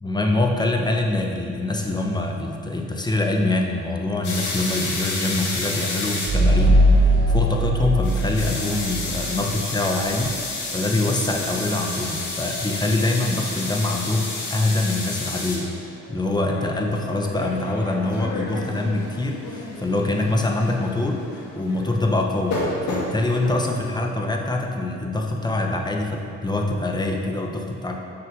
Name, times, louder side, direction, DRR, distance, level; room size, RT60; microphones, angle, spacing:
voice 1, 0.0-10.3 10.7-28.0, left 2 dB, 15° left, 1 dB, 1.0 m, -24 dB
sound 1, 4.2-23.8, left 2 dB, 80° left, 1.9 m, -31 dB
sound 2, 6.3-9.6, equal, 70° right, 1.6 m, -19 dB
7.5 x 6.0 x 5.3 m, 2.4 s
cardioid pair, 90°, 30 cm